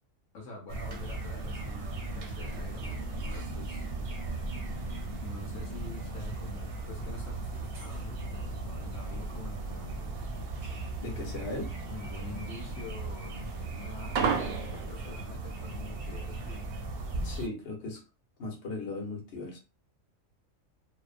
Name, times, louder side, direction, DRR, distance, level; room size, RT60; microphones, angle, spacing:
voice 1, 0.3-3.9 5.2-10.1 11.9-16.7, left 2 dB, 80° left, 1.1 m, -46 dB
sound 1, 0.7-17.5, right 2 dB, 55° right, 0.7 m, -37 dB
sound 2, 10.2-15.2, right 6 dB, 85° right, 1.0 m, -33 dB
voice 2, 11.0-11.7 17.2-18.0 18.4-19.6, left 2 dB, 60° left, 1.2 m, -37 dB
2.7 x 2.1 x 2.4 m
omnidirectional pair, 1.4 m